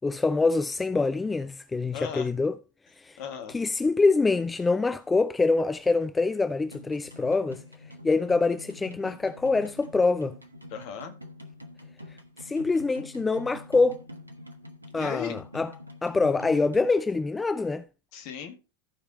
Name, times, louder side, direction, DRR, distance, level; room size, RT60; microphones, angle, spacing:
voice 1, 0.0-2.6 3.0-3.2 3.5-7.6 8.0-10.4 12.4-14.0 14.9-15.7 16.0-17.8, left 3 dB, 10° left, 0.4 m, -25 dB
voice 2, 1.9-2.3 3.2-3.6 10.7-11.1 14.9-15.4 18.1-18.6, left 8 dB, 45° left, 1.8 m, -36 dB
sound 1, 6.6-16.9, left 2 dB, 85° right, 1.2 m, -46 dB
14.5 x 4.9 x 4.1 m
figure-of-eight pair, 90°, 0 cm